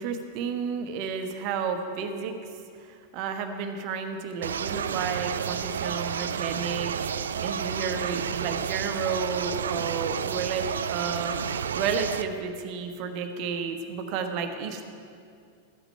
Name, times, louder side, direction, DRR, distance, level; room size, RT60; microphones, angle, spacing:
voice 1, 0.0-2.3 2.8-6.9 7.4-11.4 11.7-14.8, right 6 dB, 45° right, 6 dB, 1.1 m, -31 dB
sound 1, 4.4-12.2, right 7 dB, 65° right, 0.4 m, -31 dB
13.5 x 9.0 x 5.5 m, 2.4 s
figure-of-eight pair, 90°, 0 cm